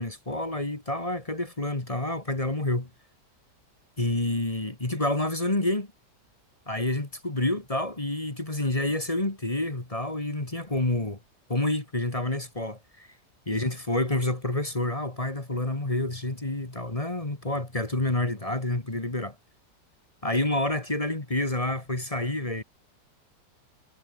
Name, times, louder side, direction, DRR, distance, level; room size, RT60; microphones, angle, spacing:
voice 1, 0.0-2.9 4.0-5.9 6.7-11.2 11.5-13.1 13.5-19.3 20.2-22.6, left 1 dB, 20° left, 2.2 m, -28 dB
omnidirectional pair, 1.9 m